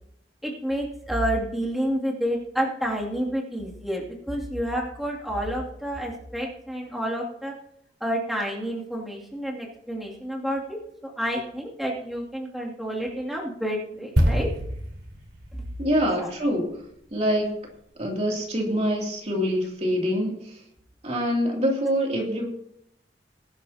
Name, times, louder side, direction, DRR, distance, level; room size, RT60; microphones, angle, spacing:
voice 1, 0.4-7.5 8.0-14.5 16.2-16.3, equal, ahead, -4 dB, 2.6 m, -29 dB
sound 1, 14.2-17.8 18.1-18.3, equal, 65° right, 4.1 m, -28 dB
voice 2, 15.8-16.8 17.1-17.6 18.0-20.6 21.0-22.5, equal, 40° right, -1 dB, 2.9 m, -25 dB
21.5 x 11.5 x 2.9 m, 0.75 s
head